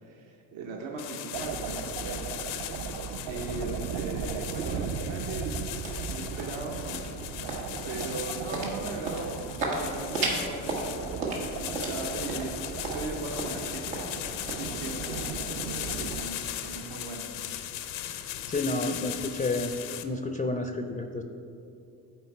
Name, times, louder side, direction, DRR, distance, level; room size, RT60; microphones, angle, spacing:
voice 1, 0.0-2.3 3.3-5.6 6.1-7.0 7.8-17.3, right 3 dB, 65° right, 0 dB, 1.0 m, -39 dB
sound 1, 1.0-20.0, left 11 dB, 70° left, 0.6 m, -38 dB
sound 2, 1.3-16.2, right 6 dB, 45° right, 0.5 m, -37 dB
sound 3, 4.8-17.3, right 2 dB, 85° right, 1.3 m, -37 dB
voice 2, 18.5-19.7 20.0-21.2, left 2 dB, 15° left, 5 dB, 0.4 m, -30 dB
8.7 x 4.0 x 4.6 m, 2.5 s
hypercardioid pair, 55°, 48 cm